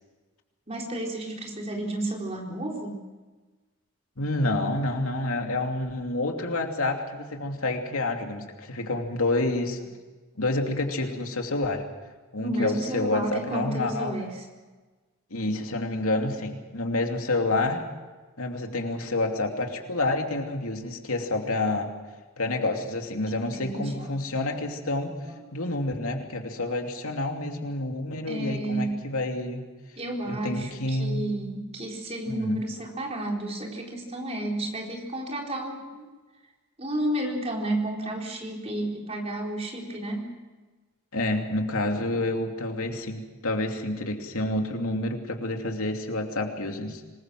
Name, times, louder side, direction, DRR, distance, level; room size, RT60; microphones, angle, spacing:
voice 1, 0.7-3.0 12.4-14.4 23.4-24.1 25.3-25.4 28.3-29.1 30.0-36.1 36.8-40.3, right 1 dB, 30° right, 0 dB, 4.2 m, -31 dB
voice 2, 4.2-9.8 10.4-11.9 12.3-14.1 15.3-17.8 18.4-21.9 22.4-25.2 25.5-29.6 30.3-31.2 32.3-32.6 41.1-47.0, left 2 dB, 80° left, 3 dB, 2.7 m, -28 dB
26.0 x 20.5 x 6.2 m, 1.3 s
head